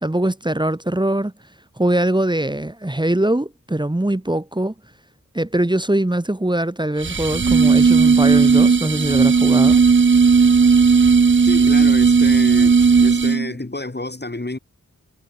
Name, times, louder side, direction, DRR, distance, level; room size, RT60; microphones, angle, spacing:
voice 1, 0.0-1.3 1.8-4.7 5.3-9.8, right 1 dB, 15° right, 1.3 m, -22 dB
sound 1, 7.0-13.5, right 5 dB, 35° right, 0.7 m, -14 dB
voice 2, 11.5-14.6, left 2 dB, 30° left, 5.1 m, -30 dB
cardioid pair, 40°, 32 cm